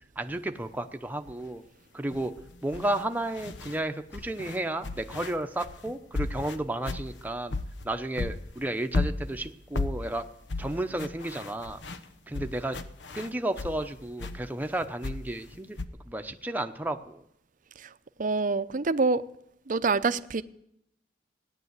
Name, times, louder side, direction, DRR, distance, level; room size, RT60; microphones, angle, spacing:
voice 1, 0.2-1.6 1.9-2.3 2.6-7.6 7.8-10.2 10.6-11.8 12.3-12.8 13.1-15.8 16.0-17.2, right 1 dB, 10° right, 6 dB, 0.8 m, -32 dB
sound 1, 1.3-1.5 2.1-3.8 4.1-7.9 8.2-13.8 14.2-15.9, left 2 dB, 85° left, 1.0 m, -35 dB
voice 2, 18.2-19.2 19.7-20.4, right 4 dB, 50° right, 13 dB, 0.6 m, -26 dB
16.5 x 10.5 x 8.1 m, 0.76 s
head